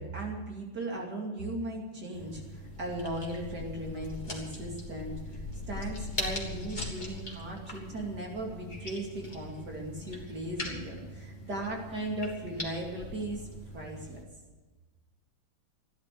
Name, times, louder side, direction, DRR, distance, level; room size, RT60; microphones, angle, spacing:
voice 1, 0.0-13.5 13.7-14.2, right 1 dB, 50° right, -1 dB, 3.2 m, -37 dB
sound 1, 2.1-14.2, left 1 dB, 20° left, 3.2 m, -41 dB
15.5 x 12.0 x 6.9 m, 1.2 s
omnidirectional pair, 2.2 m